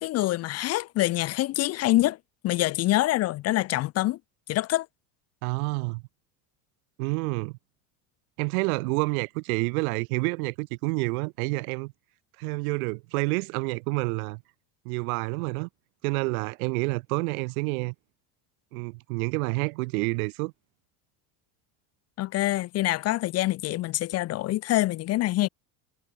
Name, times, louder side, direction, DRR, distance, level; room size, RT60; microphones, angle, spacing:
voice 1, 0.0-2.2 2.4-4.2 4.5-4.9 22.2-25.5, left 16 dB, 35° left, 0.6 m, -25 dB
voice 2, 5.4-6.0 7.0-7.6 8.4-11.9 12.4-14.4 14.9-15.7 16.0-17.9 18.7-20.5, right 27 dB, 90° right, 2.0 m, -28 dB
cardioid pair, 150°, 42 cm